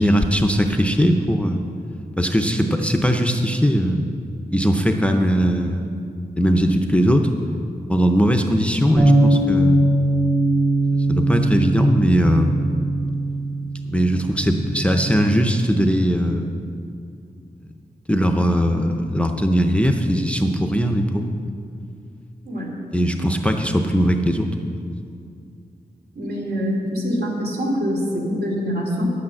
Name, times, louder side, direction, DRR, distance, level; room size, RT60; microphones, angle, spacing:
voice 1, 0.0-1.6 2.2-4.0 4.5-5.9 6.4-7.3 7.9-9.8 11.1-12.6 13.9-16.6 18.1-21.3 22.9-24.5 24.7-24.8, equal, 5° left, 4 dB, 0.5 m, -19 dB
sound 1, 9.0-15.2, right 1 dB, 40° right, 2.9 m, -20 dB
voice 2, 26.1-29.1, equal, 70° right, -2 dB, 2.7 m, -24 dB
10.0 x 8.6 x 7.6 m, 2.4 s
wide cardioid pair, 175°, 17 cm